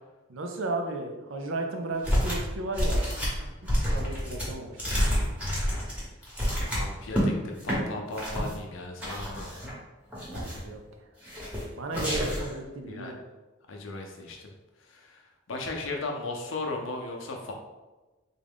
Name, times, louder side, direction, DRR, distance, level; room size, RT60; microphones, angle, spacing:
voice 1, 0.3-3.5 3.9-5.3 10.3-11.1 11.8-13.2, right 2 dB, 80° right, 3 dB, 0.6 m, -35 dB
sound 1, 2.0-2.5 2.7-7.3 7.6-7.8 8.1-8.5 9.0-9.7 10.1-10.7 11.2-11.6 11.9-12.5, equal, 5° right, 1.0 m, -28 dB
voice 2, 6.7-9.5 12.9-13.1 13.7-14.5 14.9-15.2 15.5-17.5, left 2 dB, 80° left, 2 dB, 0.6 m, -36 dB
3.7 x 2.3 x 3.5 m, 1.2 s
head